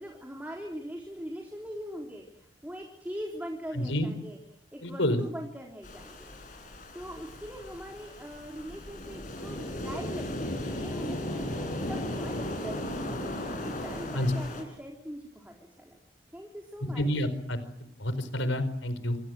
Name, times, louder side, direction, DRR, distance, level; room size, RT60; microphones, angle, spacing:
voice 1, 0.0-4.4 4.7-6.3 6.9-11.2 11.6-16.0 16.3-17.1, equal, 10° right, 0 dB, 3.8 m, -42 dB
voice 2, 3.7-4.1 4.8-5.2 14.1-14.3 16.8-17.6 18.0-19.2, left 1 dB, 85° left, 12 dB, 4.5 m, -28 dB
sound 1, 5.8-14.6, left 1 dB, 45° left, 7.8 m, -36 dB
28.5 x 24.0 x 7.8 m, 0.72 s
head